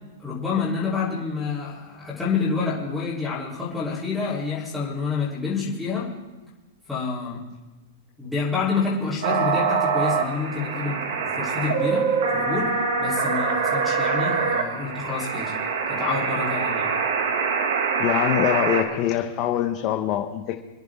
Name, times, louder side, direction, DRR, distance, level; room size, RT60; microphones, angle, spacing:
voice 1, 0.2-6.1 6.9-7.4 8.2-15.5 15.9-16.9, left 5 dB, ahead, -12 dB, 3.9 m, -28 dB
sound 1, 9.2-18.8, right 5 dB, 70° right, 2.2 m, -24 dB
voice 2, 18.0-20.6, left 12 dB, 35° left, 3 dB, 1.1 m, -24 dB
27.0 x 10.5 x 3.7 m, 1.2 s
supercardioid pair, 150°, 0 cm